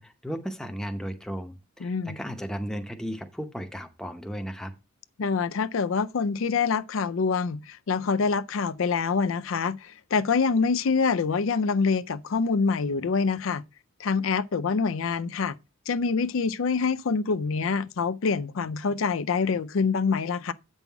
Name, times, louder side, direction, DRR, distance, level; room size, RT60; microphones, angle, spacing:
voice 1, 0.0-4.7, equal, 5° left, 0.7 m, -35 dB
voice 2, 1.8-2.2 5.2-13.6 14.0-15.6 15.9-20.5, left 5 dB, 75° left, 0.5 m, -26 dB
8.2 x 5.5 x 4.6 m
head